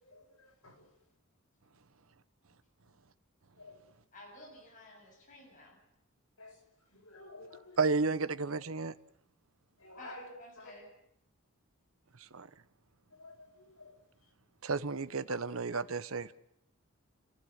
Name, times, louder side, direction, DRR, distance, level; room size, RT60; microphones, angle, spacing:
voice 1, 0.0-0.8 3.6-3.8 6.4-6.6 6.9-7.8 9.8-10.3 10.6-10.7 13.2-13.9 15.3-15.4 15.7-15.8, left 2 dB, 75° left, 6.2 m, -51 dB
voice 2, 4.1-5.8 10.0-10.9, left 1 dB, 35° left, 7.4 m, -53 dB
voice 3, 7.8-8.9 12.3-12.5 14.6-16.3, right 4 dB, 70° right, 0.9 m, -32 dB
30.0 x 15.0 x 8.1 m
head